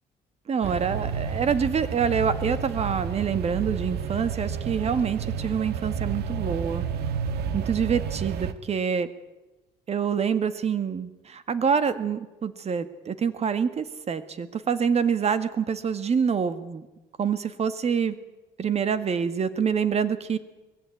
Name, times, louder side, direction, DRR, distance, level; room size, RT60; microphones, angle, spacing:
voice 1, 0.5-6.8 7.5-9.1 9.9-16.8 17.2-18.1 18.6-20.4, right 6 dB, 40° right, 13 dB, 1.8 m, -26 dB
sound 1, 0.6-8.5, right 7 dB, 75° right, 1.5 m, -31 dB
21.5 x 16.0 x 9.4 m, 1.1 s
cardioid pair, 110°, 17 cm